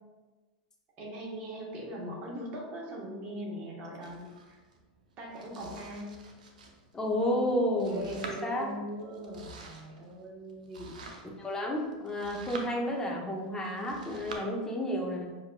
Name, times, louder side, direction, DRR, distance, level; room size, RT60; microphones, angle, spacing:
voice 1, 1.0-4.6 5.2-6.3 7.9-11.0, right 1 dB, 40° right, -2 dB, 1.2 m, -41 dB
Domestic sounds home sounds, 4.0-14.4, right 2 dB, 90° right, 0.6 m, -49 dB
voice 2, 6.9-8.7 11.4-15.3, left 1 dB, 15° left, -1 dB, 0.8 m, -31 dB
6.3 x 2.6 x 2.2 m, 1.2 s
hypercardioid pair, 115°, 4 cm